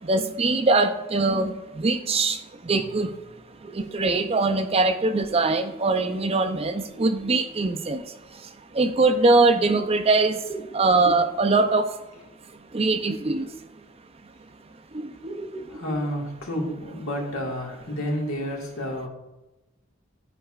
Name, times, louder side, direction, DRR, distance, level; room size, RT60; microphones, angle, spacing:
voice 1, 0.1-1.5 1.8-2.4 2.7-3.1 3.9-8.0 8.8-11.8 12.7-13.4 14.9-15.4, right 3 dB, 30° right, 7 dB, 0.5 m, -22 dB
voice 2, 15.7-19.1, equal, 80° left, -1 dB, 1.8 m, -30 dB
13.5 x 4.5 x 2.4 m, 1.0 s
head